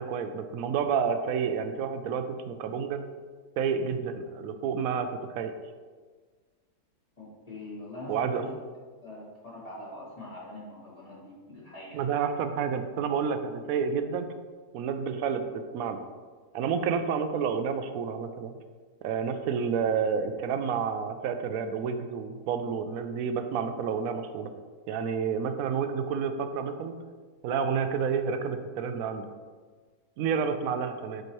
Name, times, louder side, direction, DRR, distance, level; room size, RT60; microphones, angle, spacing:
voice 1, 0.0-3.0 3.6-5.1 5.3-5.5 8.1-8.4 11.9-14.3 14.7-15.4 15.7-16.0 16.5-18.5 19.0-24.5 24.9-26.9 27.4-29.3 30.2-31.2, right 6 dB, 70° right, 8 dB, 0.9 m, -29 dB
voice 2, 7.2-8.5 9.0-12.0, left 1 dB, 25° left, -7 dB, 1.7 m, -43 dB
7.7 x 4.7 x 3.0 m, 1.5 s
omnidirectional pair, 1.7 m